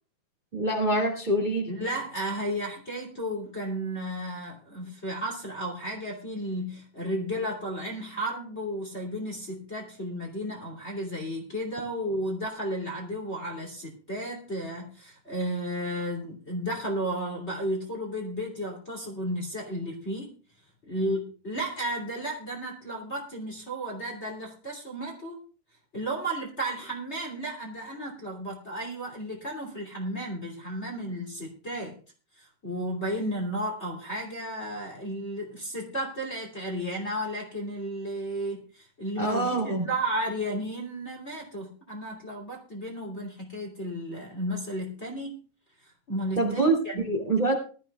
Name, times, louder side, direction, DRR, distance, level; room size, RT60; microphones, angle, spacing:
voice 1, 0.5-1.7 39.2-39.9 46.4-47.5, right 2 dB, 15° right, 0 dB, 2.1 m, -25 dB
voice 2, 1.7-20.3 20.8-25.4 25.9-32.0 32.4-45.4 45.8-47.0, right 1 dB, 20° left, -1 dB, 2.7 m, -33 dB
20.5 x 13.0 x 2.4 m, 0.38 s
omnidirectional pair, 3.8 m